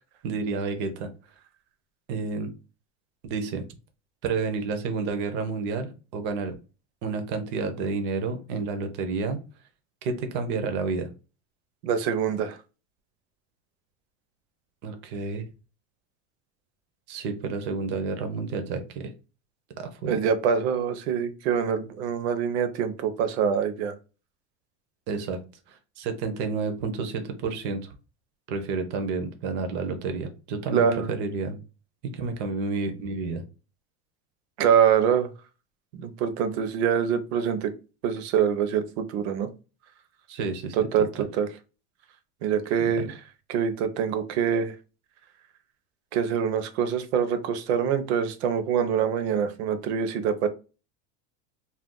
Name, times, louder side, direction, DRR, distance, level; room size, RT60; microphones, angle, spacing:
voice 1, 0.2-1.1 2.1-2.5 3.2-3.6 4.2-6.6 7.0-9.4 10.0-11.1 14.8-15.4 17.1-19.1 19.8-20.2 25.1-25.4 25.7-27.9 28.5-31.6 32.1-33.4 40.3-40.8 41.2-41.3 42.8-43.1, right 4 dB, 35° right, 6 dB, 0.5 m, -30 dB
voice 2, 11.8-12.6 20.1-23.9 30.7-31.1 34.6-35.3 36.0-37.7 38.0-39.5 40.8-41.1 41.3-41.5 42.4-43.1 43.5-44.7 46.1-50.5, right 7 dB, 70° right, 9 dB, 0.7 m, -25 dB
2.4 x 2.2 x 3.6 m, 0.32 s
supercardioid pair, 165°, 34 cm